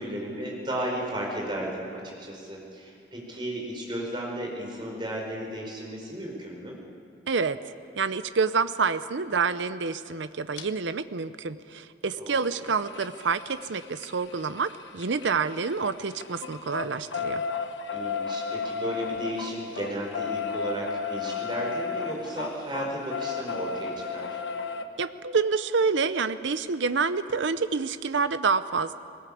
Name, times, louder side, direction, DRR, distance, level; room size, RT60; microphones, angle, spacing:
voice 1, 0.0-6.8 12.2-12.7 17.9-24.4, right 1 dB, 25° right, -1 dB, 4.9 m, -34 dB
voice 2, 7.3-7.6 8.0-17.4 25.0-28.9, right 5 dB, 90° right, 12 dB, 0.7 m, -27 dB
sound 1, 10.6-10.7 12.3-15.8 16.1-24.8 26.5-26.6 26.9-27.0 27.3-27.4, left 5 dB, 90° left, 1.1 m, -33 dB
20.0 x 19.5 x 8.5 m, 2.4 s
head